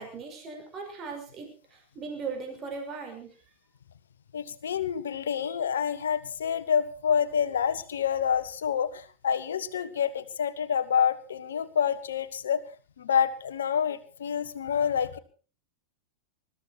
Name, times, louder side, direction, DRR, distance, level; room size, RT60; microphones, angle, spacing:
voice 1, 0.0-3.4, right 4 dB, 30° right, 4 dB, 5.6 m, -38 dB
voice 2, 4.3-12.6 13.0-15.2, left 8 dB, 65° left, 12 dB, 1.4 m, -27 dB
20.5 x 14.0 x 4.3 m, 0.38 s
figure-of-eight pair, 90°, 0 cm